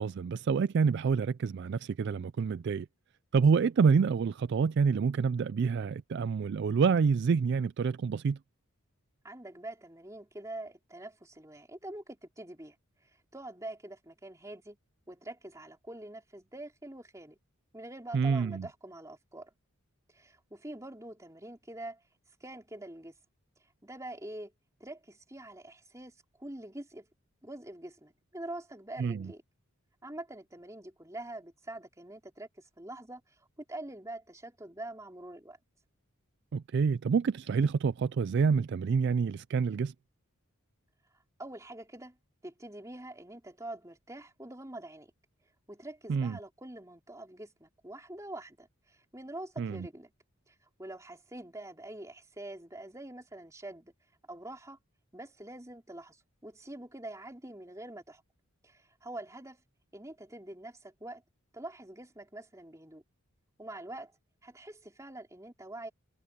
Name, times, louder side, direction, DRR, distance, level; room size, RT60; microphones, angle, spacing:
voice 1, 0.0-2.9 3.3-8.4 18.1-18.7 29.0-29.3 36.5-39.9 46.1-46.4 49.6-49.9, right 5 dB, 50° right, 0.3 m, -27 dB
voice 2, 9.2-12.8 13.3-14.8 15.1-17.4 17.7-19.5 20.1-22.0 22.4-23.1 23.8-24.5 24.8-27.1 27.4-29.4 30.0-33.4 33.7-35.6 41.4-42.2 42.4-45.1 45.7-50.1 50.5-53.9 54.3-54.8 55.1-58.2 58.6-59.6 59.9-61.2 61.5-63.0 63.6-64.1 64.4-65.9, right 1 dB, 15° right, 3.7 m, -45 dB
head